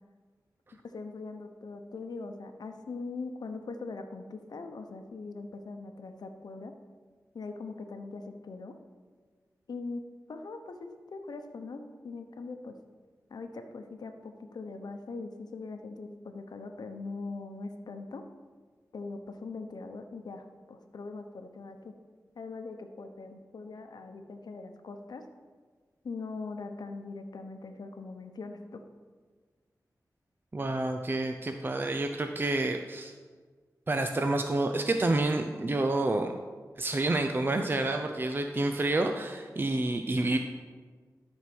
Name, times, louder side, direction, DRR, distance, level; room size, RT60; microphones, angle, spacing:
voice 1, 0.7-6.7 7.3-8.7 9.7-10.0 10.3-12.7 13.3-18.2 18.9-22.0 22.3-25.3 26.0-28.8, left 3 dB, 80° left, 6 dB, 0.9 m, -41 dB
voice 2, 30.5-33.1 33.9-36.3 36.8-40.4, right 2 dB, 30° right, 5 dB, 0.6 m, -29 dB
12.5 x 4.6 x 6.1 m, 1.5 s
wide cardioid pair, 75°, 7 cm